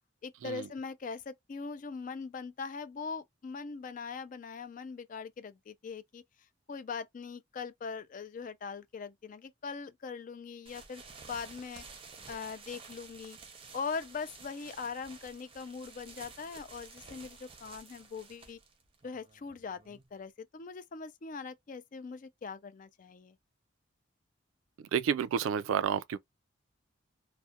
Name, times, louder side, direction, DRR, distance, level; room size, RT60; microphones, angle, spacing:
voice 1, 0.2-6.2 6.7-11.8 12.3-13.4 13.7-18.6 19.0-23.4, left 5 dB, 40° left, 0.3 m, -41 dB
sound 1, 10.7-20.2, right 4 dB, 30° right, 0.6 m, -52 dB
voice 2, 24.9-26.2, right 7 dB, 90° right, 0.3 m, -30 dB
2.3 x 2.1 x 2.7 m
head